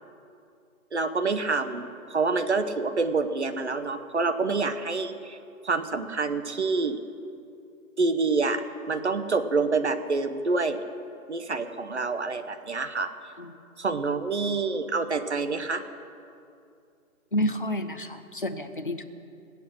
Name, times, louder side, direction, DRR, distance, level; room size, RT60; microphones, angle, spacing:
voice 1, 0.9-5.4 5.6-7.0 8.0-8.6 8.9-10.8 11.3-13.1 13.8-15.8, right 4 dB, 50° right, 10 dB, 0.9 m, -27 dB
voice 2, 17.3-19.0, left 1 dB, 35° left, 8 dB, 0.6 m, -30 dB
21.0 x 8.5 x 6.3 m, 2.5 s
hypercardioid pair, 180°, 44 cm